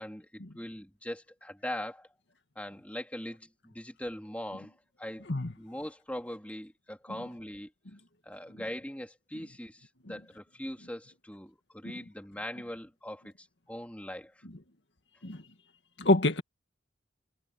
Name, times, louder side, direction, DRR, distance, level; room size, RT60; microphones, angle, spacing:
voice 1, 0.0-2.1 2.5-5.3 5.6-7.7 8.2-14.4, left 1 dB, 10° left, 3.2 m, -41 dB
voice 2, 16.0-16.4, left 2 dB, 75° left, 2.0 m, -26 dB
head